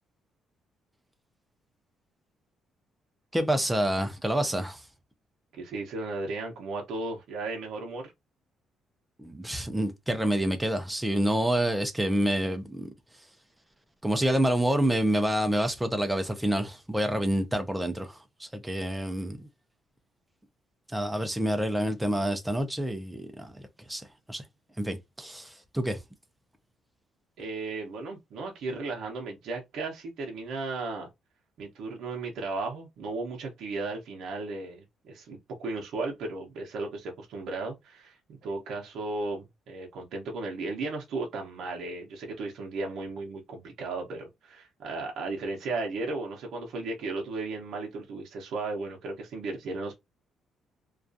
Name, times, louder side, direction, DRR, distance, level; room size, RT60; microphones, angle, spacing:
voice 1, 3.3-4.8 9.2-12.9 14.0-19.5 20.9-23.5 23.9-24.0 24.3-24.4 24.8-26.0, right 1 dB, 5° right, 0.4 m, -28 dB
voice 2, 5.5-8.1 27.4-31.1 31.6-50.0, right 3 dB, 70° right, 0.6 m, -35 dB
2.3 x 2.3 x 2.5 m
cardioid pair, 120°, 0 cm